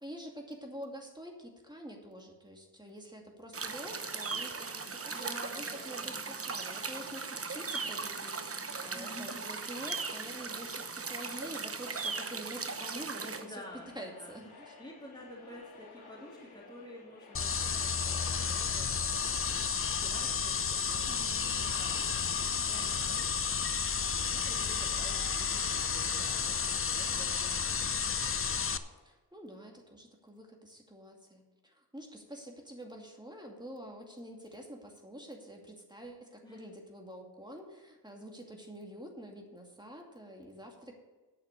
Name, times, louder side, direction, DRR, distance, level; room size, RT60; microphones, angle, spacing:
voice 1, 0.0-13.6 13.9-14.8 21.1-21.7 22.6-23.2 29.0-40.9, equal, 10° right, 1 dB, 2.3 m, -47 dB
sound 1, 3.5-13.4, right 4 dB, 40° right, 1.0 m, -38 dB
voice 2, 5.1-6.4 8.9-9.4 13.2-14.3 14.8-23.6 24.1-28.4 36.4-36.6, left 1 dB, 15° left, -7 dB, 3.2 m, -50 dB
sound 2, 13.0-29.0, left 3 dB, 85° left, 2.0 m, -56 dB
sound 3, 17.3-28.8, left 6 dB, 35° left, 0.6 m, -32 dB
8.9 x 6.5 x 8.3 m, 1.2 s
cardioid pair, 50°, 37 cm